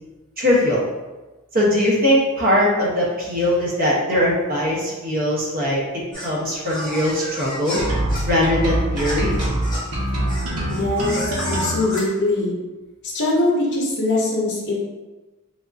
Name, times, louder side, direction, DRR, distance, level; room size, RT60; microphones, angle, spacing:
voice 1, 0.4-0.8 1.5-5.8 6.2-7.8 8.3-9.4, left 1 dB, 40° right, -5 dB, 0.8 m, -20 dB
sound 1, 6.1-12.4, equal, 20° left, 1.0 m, -32 dB
sound 2, 7.8-11.8, right 1 dB, 85° right, 0.7 m, -24 dB
voice 2, 10.7-12.5 13.0-14.8, left 2 dB, 50° left, -2 dB, 0.6 m, -22 dB
3.4 x 2.5 x 2.4 m, 1.1 s
head